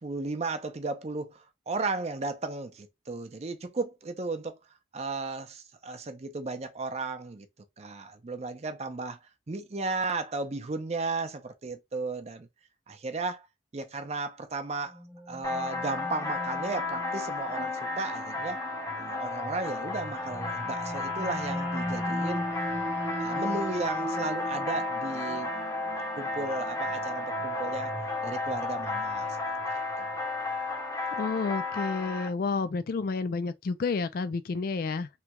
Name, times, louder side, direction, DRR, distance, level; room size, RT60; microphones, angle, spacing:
voice 1, 0.0-4.6 4.9-7.5 7.8-9.2 9.5-12.5 12.9-13.5 13.7-15.0 15.3-18.6 19.0-22.4 23.2-25.5 26.2-27.9 28.2-29.4 30.0-30.3, right 3 dB, 35° right, 0.5 m, -34 dB
sound 1, 14.9-30.2, right 1 dB, 10° right, 0.8 m, -39 dB
sound 2, 15.4-32.3, left 3 dB, 20° left, 0.6 m, -33 dB
voice 2, 31.1-35.1, left 4 dB, 50° left, 0.4 m, -30 dB
3.2 x 2.3 x 2.9 m
head